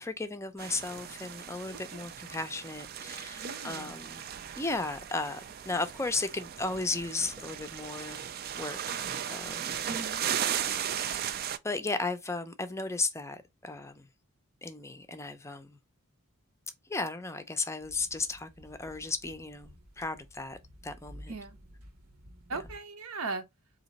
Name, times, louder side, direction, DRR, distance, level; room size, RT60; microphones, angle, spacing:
voice 1, 0.0-4.2 4.6-8.2 8.6-9.8 11.6-14.1 14.6-15.8 16.9-21.3, left 3 dB, 10° left, 0.5 m, -35 dB
sound 1, 0.6-11.6, right 9 dB, 40° right, 0.3 m, -36 dB
voice 2, 3.4-4.0 9.9-10.2 21.3-21.6 22.5-23.4, right 3 dB, 70° right, 0.9 m, -38 dB
sound 2, 17.8-22.8, equal, 85° right, 1.2 m, -53 dB
4.1 x 2.8 x 4.0 m
head